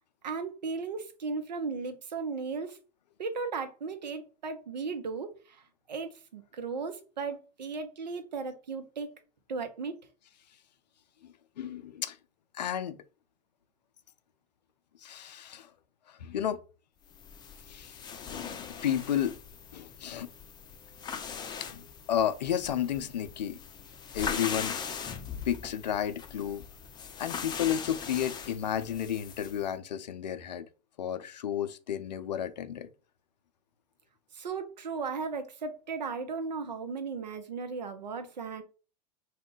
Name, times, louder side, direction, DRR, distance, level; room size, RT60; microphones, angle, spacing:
voice 1, 0.2-2.8 3.2-9.1 9.5-10.0 34.3-38.6, right 4 dB, 85° right, 0.6 m, -36 dB
voice 2, 11.2-12.2 12.5-13.0 15.0-15.7 16.1-16.6 17.7-18.0 18.3-19.3 19.7-20.3 21.7-23.6 24.1-24.8 25.5-26.6 27.2-30.7 31.0-32.9, left 9 dB, 80° left, 0.4 m, -32 dB
sound 1, 17.1-29.7, left 6 dB, 20° left, 0.4 m, -40 dB
2.3 x 2.1 x 3.7 m
hypercardioid pair, 90°, 21 cm